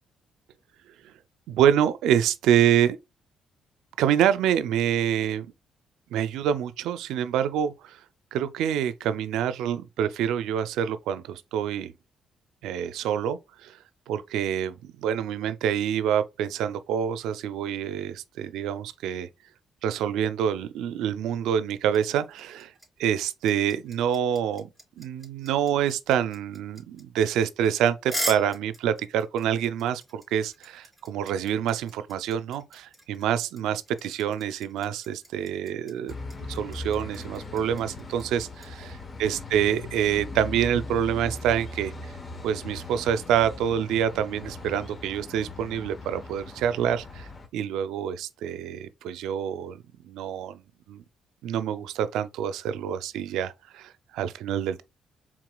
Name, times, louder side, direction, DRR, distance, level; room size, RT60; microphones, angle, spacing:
voice 1, 1.5-3.0 4.0-5.5 6.1-8.0 8.3-11.9 12.6-13.8 14.1-19.3 19.8-22.7 23.0-24.7 25.0-36.1 36.5-38.9 39.2-41.9 42.4-50.6 50.9-51.0 51.4-54.8, right 9 dB, 90° right, 0.4 m, -26 dB
sound 1, 21.9-38.7, equal, ahead, 2.8 m, -39 dB
sound 2, 36.1-47.5, left 2 dB, 35° left, 1.0 m, -39 dB
4.8 x 3.6 x 2.2 m
cardioid pair, 90°, 0 cm